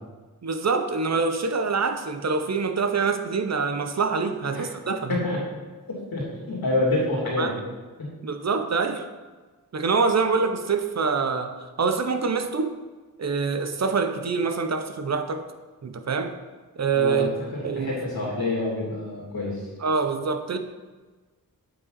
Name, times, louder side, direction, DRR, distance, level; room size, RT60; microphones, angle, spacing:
voice 1, 0.4-5.2 7.4-7.5 8.2-9.1 9.7-11.5 11.8-12.8 13.2-15.5 15.8-16.3 16.8-17.3 17.6-18.0 19.8-20.6, right 4 dB, 50° right, 8 dB, 0.6 m, -25 dB
voice 2, 6.1-7.5 8.0-8.1 16.9-19.6, left 2 dB, 90° left, -5 dB, 2.6 m, -27 dB
7.9 x 5.8 x 4.0 m, 1.3 s
wide cardioid pair, 95°, 35 cm